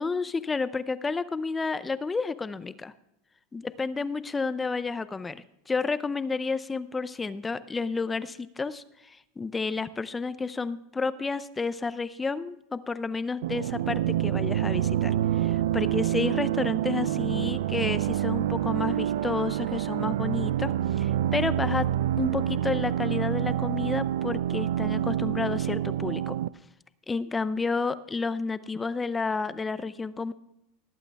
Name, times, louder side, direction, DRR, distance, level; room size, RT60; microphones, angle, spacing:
voice 1, 0.0-2.9 3.5-21.9 22.2-26.4 27.1-30.3, left 4 dB, 15° left, 14 dB, 0.5 m, -31 dB
sound 1, 13.4-26.5, right 11 dB, 85° right, 0.3 m, -27 dB
18.0 x 8.4 x 3.5 m, 0.85 s
supercardioid pair, 125°, 0 cm